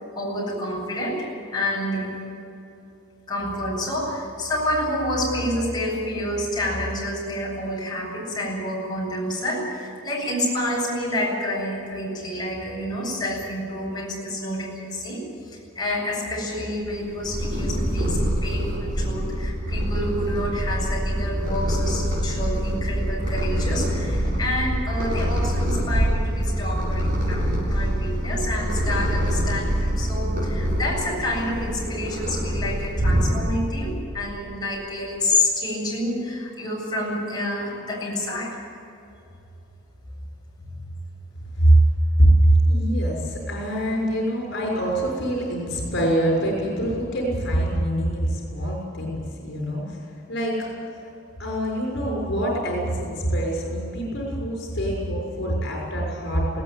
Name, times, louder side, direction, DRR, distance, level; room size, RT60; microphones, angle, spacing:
voice 1, 0.2-2.2 3.3-15.2 15.7-38.6, left 1 dB, 20° left, -4 dB, 7.7 m, -28 dB
Purr, 16.9-33.7, equal, 45° right, 7.6 m, -25 dB
voice 2, 42.2-50.7 50.9-51.1 51.4-56.6, right 1 dB, 60° left, -1 dB, 6.4 m, -23 dB
20.5 x 18.0 x 9.3 m, 2.8 s
head